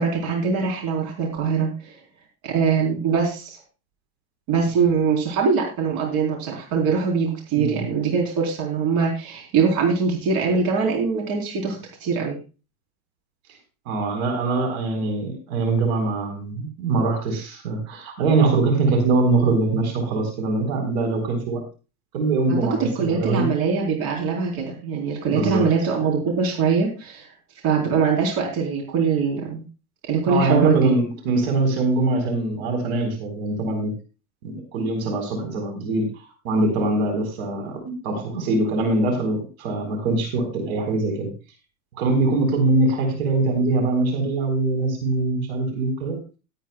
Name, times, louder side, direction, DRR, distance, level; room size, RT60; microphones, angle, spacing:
voice 1, 0.0-2.0 2.4-3.6 4.5-12.4 22.5-27.3 27.6-29.6 30.1-30.9, right 5 dB, 55° right, 0 dB, 3.8 m, -22 dB
voice 2, 7.5-7.8 13.9-21.6 22.1-23.5 25.3-25.7 30.3-33.9 34.4-36.1 36.4-41.3 42.0-46.2, right 3 dB, 70° right, 3 dB, 4.2 m, -23 dB
19.0 x 9.0 x 2.2 m, 0.32 s
hypercardioid pair, 100°, 43 cm